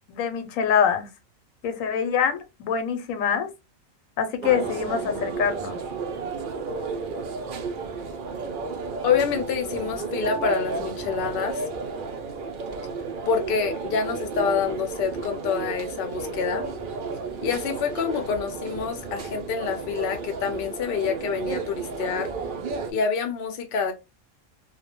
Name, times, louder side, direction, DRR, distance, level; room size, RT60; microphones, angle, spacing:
voice 1, 0.1-1.1 1.6-3.5 4.2-5.8, left 7 dB, 85° left, 1.0 m, -25 dB
sound 1, 4.4-22.9, right 4 dB, 65° right, 0.5 m, -32 dB
voice 2, 9.0-11.6 13.3-16.7 17.4-22.3 22.9-23.9, left 6 dB, 60° left, 0.6 m, -27 dB
2.2 x 2.1 x 2.8 m
omnidirectional pair, 1.4 m